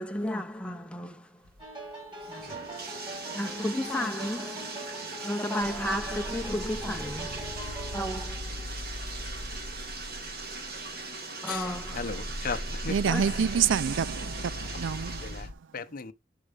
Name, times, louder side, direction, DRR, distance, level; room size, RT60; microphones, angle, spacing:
voice 1, 0.0-1.4 2.3-2.5 3.3-8.7 11.4-12.3 13.1-13.4, left 1 dB, 5° left, 0.7 m, -34 dB
Bathtub (filling or washing), 1.4-15.5, right 3 dB, 55° right, 1.8 m, -40 dB
sound 1, 1.6-8.3, right 1 dB, 25° right, 4.2 m, -42 dB
sound 2, 5.6-11.1 11.5-15.5, equal, 40° right, 1.0 m, -39 dB
voice 2, 11.5-12.9 15.2-15.5 15.7-16.1, left 5 dB, 50° left, 0.6 m, -36 dB
voice 3, 12.8-15.6, right 7 dB, 85° right, 0.4 m, -28 dB
6.5 x 4.7 x 4.9 m
head